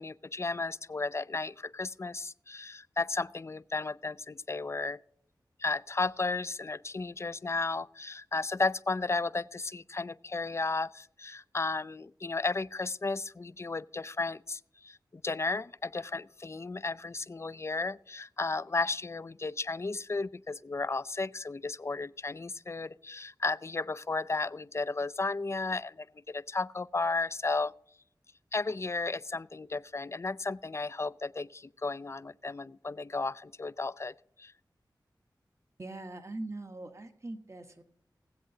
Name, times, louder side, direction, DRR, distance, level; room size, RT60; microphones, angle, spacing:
voice 1, 0.0-5.0 5.6-27.7 28.5-34.5, left 3 dB, 35° left, 0.4 m, -34 dB
voice 2, 35.8-37.8, right 2 dB, 35° right, 1.3 m, -41 dB
20.0 x 7.8 x 2.7 m
cardioid pair, 40°, 8 cm